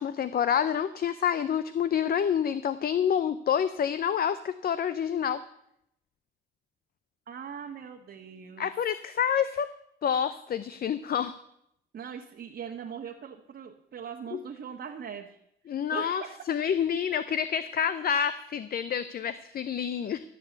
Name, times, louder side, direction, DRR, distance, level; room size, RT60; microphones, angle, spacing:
voice 1, 0.0-5.4 8.6-9.7 10.0-11.4 14.3-14.4 15.7-16.2 16.5-20.2, left 8 dB, 50° left, 13 dB, 0.6 m, -28 dB
voice 2, 7.3-8.7 11.9-15.4 15.9-16.3, right 7 dB, 55° right, 0 dB, 1.4 m, -40 dB
14.0 x 6.8 x 7.9 m, 0.76 s
cardioid pair, 90°, 20 cm